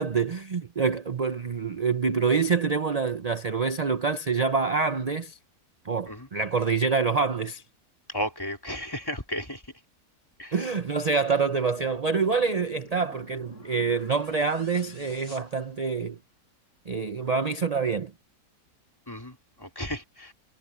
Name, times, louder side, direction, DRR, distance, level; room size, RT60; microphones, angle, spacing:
voice 1, 0.0-5.4 5.8-7.6 10.5-16.2 16.9-18.1, right 5 dB, 45° right, 0.5 m, -26 dB
voice 2, 8.1-9.6 10.4-10.6 19.1-20.3, equal, 10° left, 3.6 m, -34 dB
sound 1, 11.8-16.4, left 1 dB, 45° left, 7.0 m, -50 dB
omnidirectional pair, 1.8 m